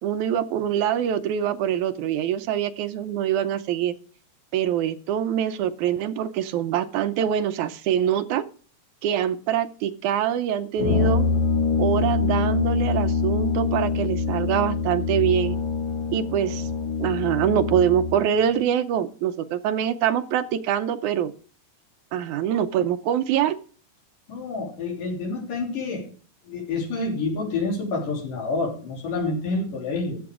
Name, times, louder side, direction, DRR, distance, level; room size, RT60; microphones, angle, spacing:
voice 1, 0.0-4.0 4.5-8.4 9.0-11.3 11.8-15.6 16.1-16.7 17.0-21.3 22.1-23.6, right 10 dB, 75° right, 11 dB, 2.0 m, -24 dB
Brass instrument, 10.8-18.3, left 4 dB, 70° left, 2.7 m, -24 dB
voice 2, 24.3-26.0 26.5-30.2, left 3 dB, 85° left, -2 dB, 4.9 m, -28 dB
14.5 x 9.9 x 3.7 m, 0.42 s
omnidirectional pair, 3.7 m